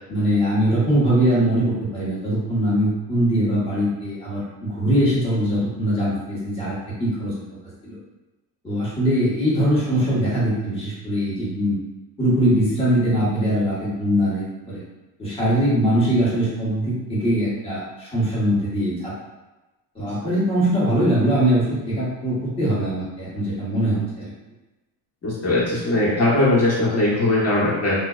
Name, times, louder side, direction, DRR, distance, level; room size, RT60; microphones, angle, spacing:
voice 1, 0.1-7.4 7.8-8.0 8.6-11.8 12.2-14.8 15.2-19.1 19.9-24.3, right 1 dB, 10° left, -9 dB, 1.2 m, -22 dB
voice 2, 25.2-27.9, left 2 dB, 30° left, -8 dB, 1.2 m, -20 dB
2.5 x 2.2 x 2.4 m, 1.1 s
supercardioid pair, 95°, 46 cm